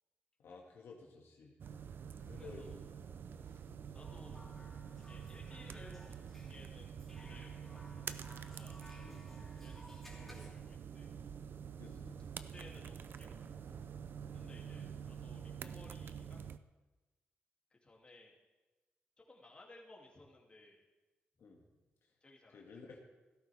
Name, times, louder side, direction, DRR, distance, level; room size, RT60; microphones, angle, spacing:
voice 1, 0.4-1.6 2.2-3.2 3.6-3.8 9.0-9.2 11.8-12.1 14.4-14.7 21.4-21.6 22.5-23.0, left 4 dB, 80° left, -1 dB, 1.9 m, -54 dB
sound 1, 1.6-16.6, right 7 dB, 60° right, 0.5 m, -47 dB
voice 2, 2.4-2.8 3.4-3.6 3.9-4.4 5.0-11.1 12.5-13.8 14.3-16.5 17.7-18.4 19.2-20.8 22.2-23.0, left 2 dB, 25° left, -2 dB, 2.6 m, -60 dB
sound 2, 4.0-10.5, left 1 dB, 5° left, 3.2 m, -59 dB
16.0 x 13.5 x 3.5 m, 1.2 s
wide cardioid pair, 120°, 4 cm